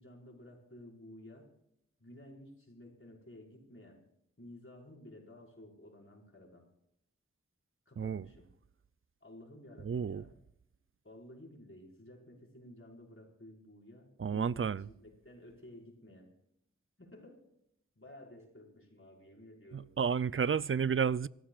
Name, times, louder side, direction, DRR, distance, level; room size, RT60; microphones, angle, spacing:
voice 1, 0.0-1.5 2.0-4.0 4.4-6.7 7.8-8.5 9.2-10.4 11.0-16.3 17.0-17.5 17.9-19.9, left 1 dB, 45° left, 5.2 m, -54 dB
voice 2, 9.9-10.2 14.2-14.8 19.7-21.3, right 6 dB, 45° right, 0.4 m, -31 dB
26.0 x 15.0 x 2.4 m
wide cardioid pair, 45°, 31 cm